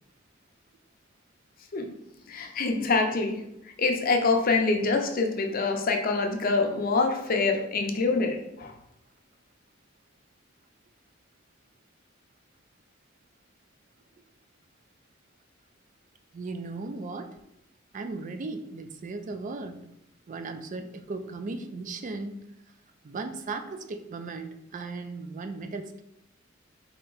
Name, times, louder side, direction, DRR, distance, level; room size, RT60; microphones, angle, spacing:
voice 1, 2.3-3.4 3.8-8.7, left 3 dB, 45° left, 4 dB, 0.5 m, -25 dB
voice 2, 16.3-17.4 17.9-19.8 20.3-22.5 23.0-26.0, right 3 dB, 40° right, 8 dB, 0.4 m, -36 dB
4.3 x 2.9 x 3.8 m, 0.81 s
head